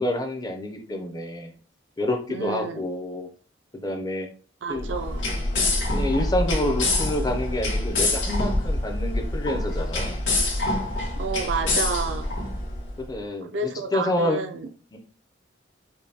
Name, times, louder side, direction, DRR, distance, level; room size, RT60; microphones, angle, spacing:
voice 1, 0.0-1.5 2.0-3.3 3.7-4.3 4.7-4.9 5.9-10.2 13.1-14.4 14.9-15.0, left 1 dB, 20° left, 0.5 m, -28 dB
voice 2, 2.3-2.8 4.6-5.3 11.2-12.3 13.5-14.7, right 4 dB, 70° right, 0.4 m, -30 dB
sound 1, 4.8-12.9, left 2 dB, 75° left, 1.6 m, -26 dB
5.2 x 2.2 x 2.8 m
head